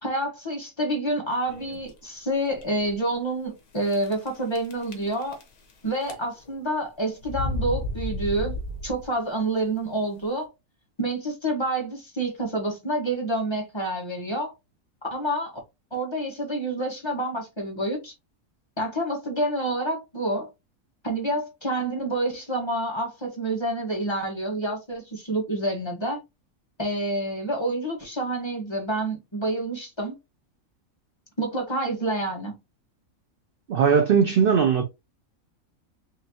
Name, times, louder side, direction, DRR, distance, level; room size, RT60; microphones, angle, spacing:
voice 1, 0.0-5.4 5.8-10.5 11.0-14.5 15.1-15.5 15.9-18.1 18.8-20.5 21.0-26.2 26.8-30.2 31.4-32.5, right 1 dB, 20° left, 1.3 m, -28 dB
sound 1, 1.5-1.9 2.5-2.6 2.9-3.0 3.9-4.3 4.6-5.7 6.0-6.6 7.2-9.2, left 1 dB, 70° left, 1.4 m, -32 dB
voice 2, 33.7-34.8, right 6 dB, 60° right, 0.5 m, -19 dB
4.6 x 3.0 x 2.8 m
omnidirectional pair, 1.5 m